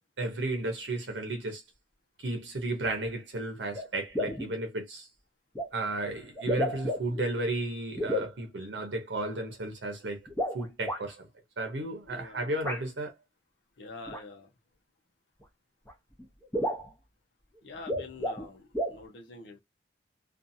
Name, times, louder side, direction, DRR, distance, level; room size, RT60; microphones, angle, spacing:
voice 1, 0.2-1.6 2.2-5.1 5.7-10.3 10.5-11.3 11.6-13.1, right 2 dB, 85° right, 0.8 m, -33 dB
sound 1, 3.7-3.9 4.1-4.5 5.6-5.7 6.4-7.3 8.0-8.3 10.3-11.0 12.6-12.8 14.1-14.2 15.4-15.5 15.9-16.0 16.2-16.3 16.5-16.9 17.7-18.5 18.7-19.0, equal, 10° left, 0.7 m, -31 dB
voice 2, 12.1-12.5 13.8-14.5 17.6-19.6, left 3 dB, 80° left, 0.7 m, -46 dB
2.7 x 2.4 x 2.6 m
head